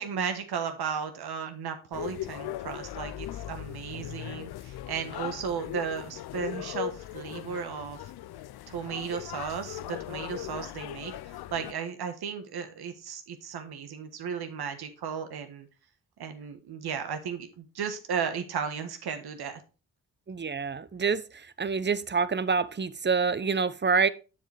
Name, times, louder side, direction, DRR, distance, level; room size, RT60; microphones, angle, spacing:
voice 1, 0.0-8.0 8.7-15.7 16.2-19.6, right 6 dB, 75° right, 1.4 m, -35 dB
sound 1, 1.9-11.7, left 14 dB, 75° left, 0.5 m, -39 dB
voice 2, 20.3-24.1, right 5 dB, 30° right, 0.7 m, -27 dB
7.3 x 7.0 x 3.4 m
supercardioid pair, 40°, 39 cm